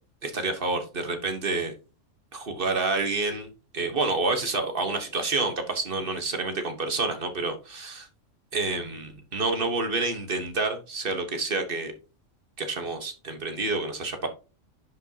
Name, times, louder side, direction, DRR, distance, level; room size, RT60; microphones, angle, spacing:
voice 1, 0.2-1.7 2.3-3.5 3.7-8.1 8.5-11.9 12.6-14.3, right 3 dB, 45° right, 6 dB, 1.4 m, -28 dB
10.5 x 5.4 x 2.8 m, 0.32 s
omnidirectional pair, 1.3 m